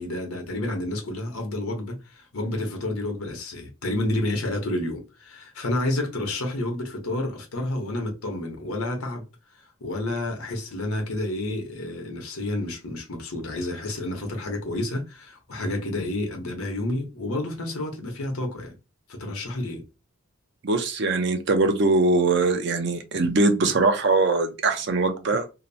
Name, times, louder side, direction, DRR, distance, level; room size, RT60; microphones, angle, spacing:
voice 1, 0.0-9.2 9.8-18.7 19.1-19.8, left 1 dB, 90° left, 0.9 m, -30 dB
voice 2, 20.6-25.5, right 3 dB, 55° right, 0.5 m, -22 dB
2.8 x 2.0 x 2.6 m
head